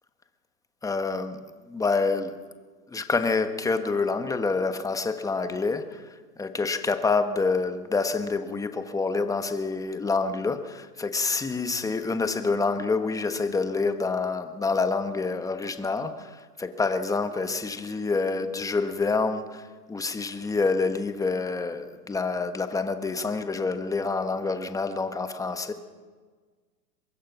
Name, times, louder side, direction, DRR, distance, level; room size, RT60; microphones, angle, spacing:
voice 1, 0.8-1.4 1.7-2.3 2.9-6.0 6.4-19.6 19.9-25.7, left 4 dB, 5° left, 9 dB, 1.2 m, -27 dB
24.0 x 22.0 x 6.0 m, 1.5 s
hypercardioid pair, 130°, 50 cm